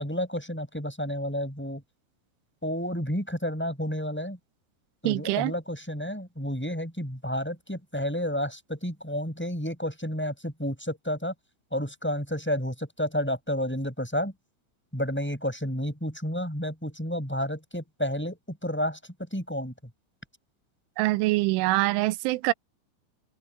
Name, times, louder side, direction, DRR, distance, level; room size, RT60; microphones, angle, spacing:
voice 1, 0.0-1.8 2.6-4.4 5.0-11.3 11.7-14.3 14.9-19.0 19.3-19.7, equal, ahead, 7.3 m, -31 dB
voice 2, 5.1-5.5 21.0-22.5, right 20 dB, 85° right, 3.3 m, -24 dB
open air
omnidirectional pair, 5.5 m